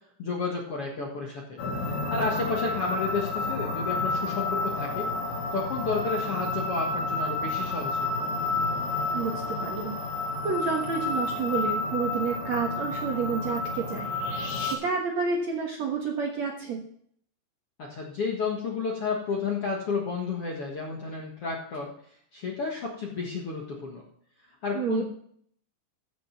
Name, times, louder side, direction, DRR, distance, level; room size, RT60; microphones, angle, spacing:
voice 1, 0.2-1.6 2.1-5.1 5.5-8.1 17.8-21.9 22.3-24.0 24.6-25.0, left 4 dB, 55° left, -1 dB, 1.6 m, -31 dB
sound 1, 1.6-14.8, left 3 dB, 85° left, 4.4 m, -30 dB
voice 2, 9.6-9.9 10.4-16.8 24.7-25.0, right 5 dB, 60° right, 1 dB, 1.9 m, -30 dB
14.5 x 6.4 x 5.8 m, 0.63 s
omnidirectional pair, 5.0 m